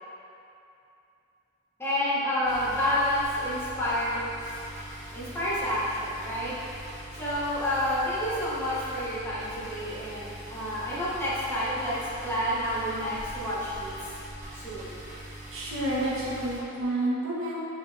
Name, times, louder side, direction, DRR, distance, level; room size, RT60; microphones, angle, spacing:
voice 1, 1.8-4.2 5.1-6.5 7.1-12.0 12.2-13.9 14.5-15.0 16.4-16.5 17.0-17.1, left 1 dB, 10° left, -10 dB, 1.9 m, -29 dB
sound 1, 2.4-16.6, right 1 dB, 30° right, 2.0 m, -42 dB
voice 2, 15.5-17.5, right 1 dB, 65° right, -7 dB, 1.8 m, -29 dB
10.5 x 5.6 x 3.7 m, 2.7 s
head